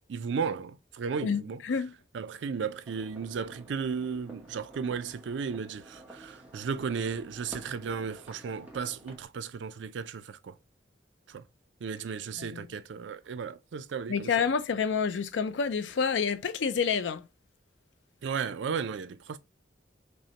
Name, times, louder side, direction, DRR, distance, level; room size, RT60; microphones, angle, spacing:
voice 1, 0.1-1.6 2.1-10.5 11.3-11.4 11.8-14.3 18.2-19.4, right 6 dB, 85° right, 0.4 m, -34 dB
voice 2, 1.2-1.9 12.4-12.7 14.1-17.2, left 6 dB, 85° left, 0.4 m, -28 dB
sound 1, 2.8-9.2, right 1 dB, 10° right, 0.9 m, -51 dB
5.3 x 2.1 x 2.8 m
head